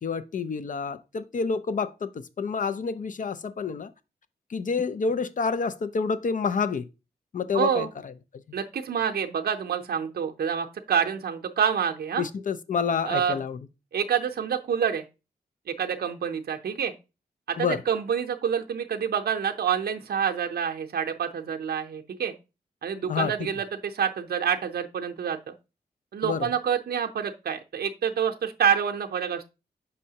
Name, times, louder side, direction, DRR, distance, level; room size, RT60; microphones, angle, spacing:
voice 1, 0.0-3.9 4.5-6.9 7.3-8.1 12.2-13.6 17.6-17.8 23.1-23.3 26.2-26.5, left 5 dB, 50° left, 0.4 m, -28 dB
voice 2, 7.5-7.9 8.5-12.2 13.1-13.4 13.9-15.0 15.8-16.9 17.5-22.3 22.8-25.4 26.1-29.5, right 8 dB, 70° right, 0.6 m, -27 dB
6.4 x 5.5 x 2.8 m
wide cardioid pair, 85°, 17 cm